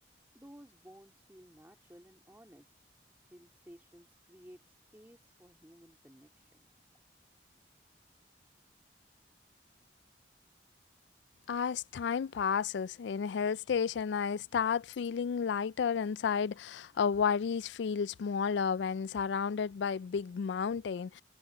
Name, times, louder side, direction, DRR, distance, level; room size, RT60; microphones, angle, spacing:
voice 1, 0.3-2.7 3.3-6.7, equal, 10° right, 2.8 m, -56 dB
voice 2, 11.5-21.2, left 6 dB, 75° left, 0.3 m, -32 dB
head